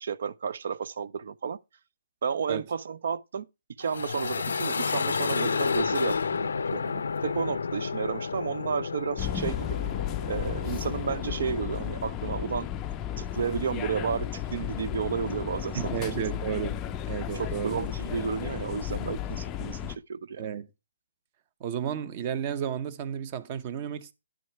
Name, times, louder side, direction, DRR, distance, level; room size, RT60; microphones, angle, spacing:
voice 1, 0.0-1.6 2.2-3.5 3.8-9.8 10.3-12.7 13.2-15.8 17.3-20.5, right 6 dB, 60° right, 0.5 m, -32 dB
sound 1, 3.8-11.6, left 5 dB, 75° left, 0.5 m, -31 dB
sound 2, 9.2-20.0, left 11 dB, 15° left, 0.4 m, -34 dB
voice 2, 15.7-16.8 17.1-17.8 19.1-19.2 20.4-20.7 21.6-24.1, right 9 dB, 30° right, 0.8 m, -32 dB
10.0 x 6.3 x 4.4 m
hypercardioid pair, 160°, 0 cm